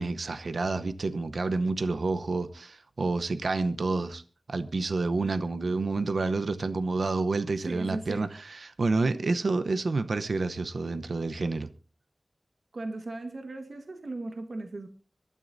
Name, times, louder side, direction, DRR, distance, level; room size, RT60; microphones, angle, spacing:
voice 1, 0.0-4.2 4.5-11.7, right 3 dB, 80° right, 0.8 m, -29 dB
voice 2, 7.7-8.3 12.7-14.9, right 2 dB, 65° right, 1.4 m, -37 dB
25.0 x 13.0 x 2.7 m
wide cardioid pair, 70°, 0 cm